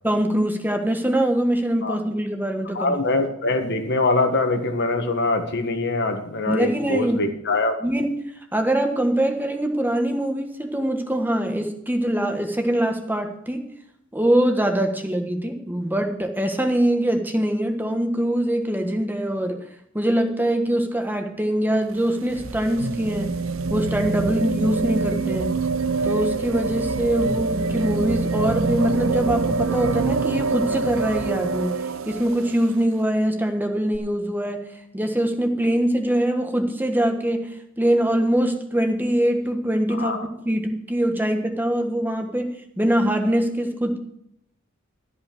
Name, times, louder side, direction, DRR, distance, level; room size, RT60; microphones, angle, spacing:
voice 1, 0.0-2.9 6.5-7.2 7.8-8.1 8.5-13.6 14.1-19.6 19.9-23.3 23.7-25.5 26.0-34.6 34.9-37.5 37.8-44.0, right 1 dB, 10° right, 4 dB, 1.5 m, -23 dB
voice 2, 2.7-7.7 40.0-40.3, left 2 dB, 55° left, 6 dB, 1.7 m, -23 dB
sound 1, 21.8-32.7 33.9-34.0, right 4 dB, 75° right, 0.6 m, -25 dB
13.0 x 5.6 x 8.6 m, 0.74 s
head